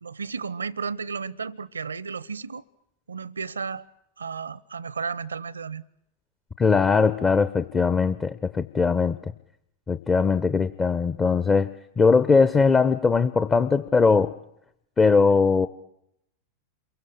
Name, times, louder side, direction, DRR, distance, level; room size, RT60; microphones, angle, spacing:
voice 1, 0.0-2.6 3.1-3.9 4.2-5.8, right 5 dB, 75° right, 0.9 m, -33 dB
voice 2, 6.6-9.2 9.9-11.7 12.0-14.3 15.0-15.7, left 4 dB, 20° left, 1.0 m, -20 dB
28.0 x 23.5 x 7.4 m
figure-of-eight pair, 90°, 0 cm